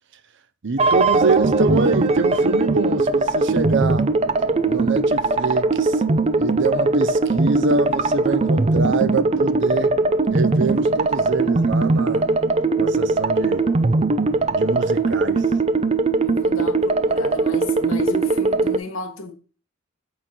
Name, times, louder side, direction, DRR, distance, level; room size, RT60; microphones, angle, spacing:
voice 1, 0.6-4.1 4.7-6.0 6.4-10.0 10.3-12.3 12.8-13.7 14.5-15.4, right 4 dB, 60° right, 0.7 m, -25 dB
sound 1, 0.8-18.8, right 3 dB, 30° right, 0.5 m, -20 dB
voice 2, 16.2-19.3, left 3 dB, 75° left, 1.3 m, -32 dB
8.4 x 3.7 x 6.0 m
head